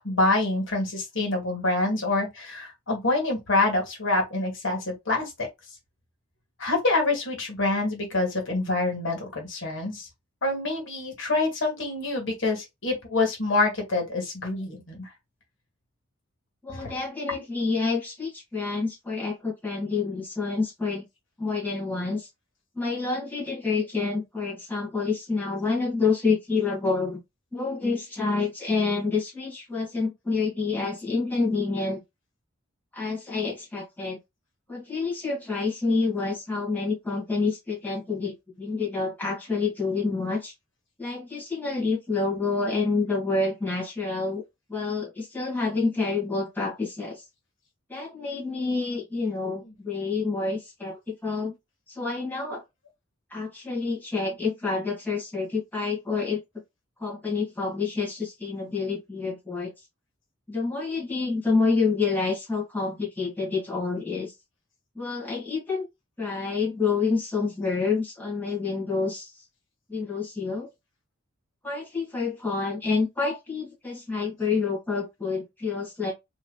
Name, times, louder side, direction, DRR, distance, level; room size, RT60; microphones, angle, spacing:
voice 1, 0.0-5.5 6.6-10.1 10.4-15.1 16.7-16.9, left 2 dB, 65° left, 1.7 m, -26 dB
voice 2, 16.6-21.0 21.4-22.3 22.7-27.2 27.5-32.0 32.9-34.2 34.7-40.5 41.0-44.4 44.7-47.2 47.9-51.5 51.9-52.6 53.3-56.4 57.0-59.7 60.5-64.3 64.9-65.8 66.2-69.3 69.9-70.7 71.6-76.1, left 4 dB, 10° left, 1.8 m, -28 dB
3.7 x 3.0 x 2.3 m
head